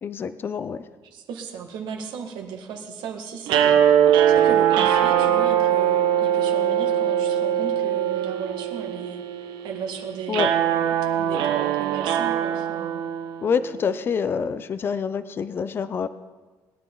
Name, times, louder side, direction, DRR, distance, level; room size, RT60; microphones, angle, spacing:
voice 1, 0.0-0.8 10.3-10.5 13.4-16.1, left 6 dB, 30° left, 13 dB, 0.5 m, -26 dB
voice 2, 1.1-4.0 4.3-9.2 9.6-10.8 11.1-13.0, right 6 dB, 70° right, 2 dB, 1.9 m, -35 dB
sound 1, 3.5-13.7, right 10 dB, 90° right, 1.1 m, -21 dB
20.0 x 10.5 x 3.9 m, 1.3 s
cardioid pair, 165°, 8 cm